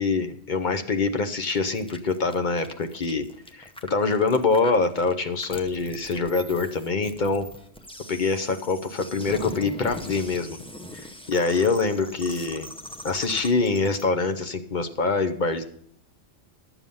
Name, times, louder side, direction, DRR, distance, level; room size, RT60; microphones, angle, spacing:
voice 1, 0.0-3.3 3.5-7.5 8.1-10.6 10.9-12.7 13.0-15.6, left 4 dB, 45° left, 7 dB, 0.9 m, -25 dB
sound 1, 1.4-14.0, left 1 dB, 5° left, 0.4 m, -42 dB
11.5 x 7.1 x 5.4 m, 0.63 s
omnidirectional pair, 1.2 m